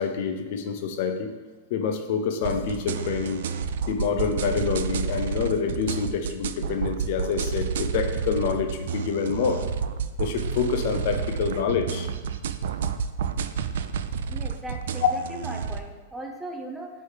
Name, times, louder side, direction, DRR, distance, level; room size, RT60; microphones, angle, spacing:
voice 1, 0.0-1.3 1.7-3.4 3.9-9.7 10.2-12.1, left 6 dB, 55° left, 6 dB, 0.6 m, -27 dB
sound 1, 2.4-15.8, right 6 dB, 75° right, 0.3 m, -30 dB
voice 2, 14.3-16.9, right 1 dB, 5° right, 1 dB, 0.7 m, -38 dB
8.6 x 3.3 x 3.3 m, 1.2 s
hypercardioid pair, 140°, 0 cm